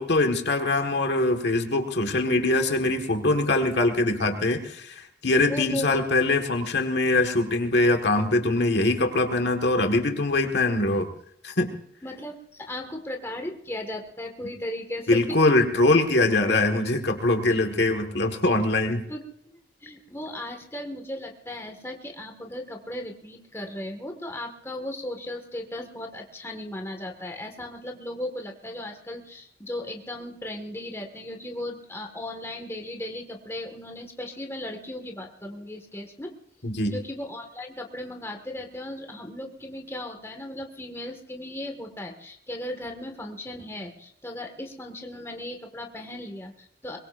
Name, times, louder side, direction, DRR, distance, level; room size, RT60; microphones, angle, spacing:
voice 1, 0.0-11.1 11.4-11.7 15.1-19.0 36.6-37.0, left 2 dB, 65° left, 4 dB, 1.7 m, -23 dB
voice 2, 5.5-6.0 12.0-15.2 19.1-19.5 19.8-36.3 36.9-47.0, left 1 dB, 15° left, 2 dB, 1.8 m, -36 dB
23.0 x 22.0 x 2.6 m, 0.67 s
head